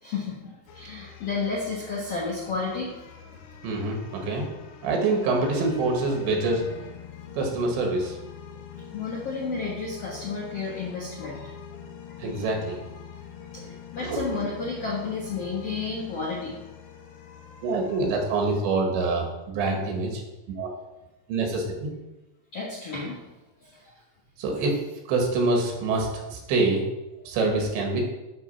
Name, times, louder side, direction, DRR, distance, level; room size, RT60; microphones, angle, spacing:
voice 1, 0.0-2.9 8.9-11.5 12.1-12.4 13.1-13.2 13.5-16.6 22.5-23.3 23.6-23.9, left 4 dB, 65° left, -4 dB, 1.5 m, -32 dB
sound 1, 0.7-18.6, left 8 dB, 90° left, 3.5 m, -44 dB
voice 2, 3.6-6.6 7.3-8.2 12.2-12.8 13.6-13.7 14.0-14.4 17.6-20.2 20.6-20.7 21.3-21.9 24.4-24.8 25.1-26.9 27.3-28.0, right 3 dB, 90° right, 1 dB, 4.0 m, -26 dB
12.0 x 4.5 x 5.7 m, 1.0 s
omnidirectional pair, 5.0 m